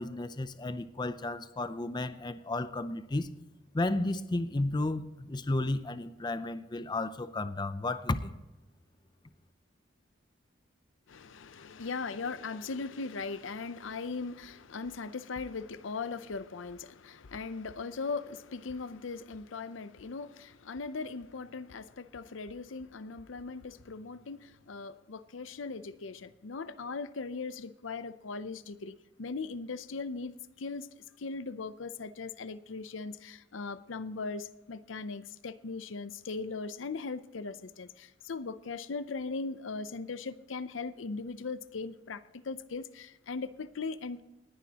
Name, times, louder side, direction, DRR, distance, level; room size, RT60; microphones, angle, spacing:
voice 1, 0.0-3.3 3.7-8.3, left 2 dB, 25° left, 0.5 m, -33 dB
voice 2, 11.1-30.9 31.2-44.2, left 4 dB, 85° left, 0.6 m, -39 dB
19.5 x 10.5 x 2.9 m
head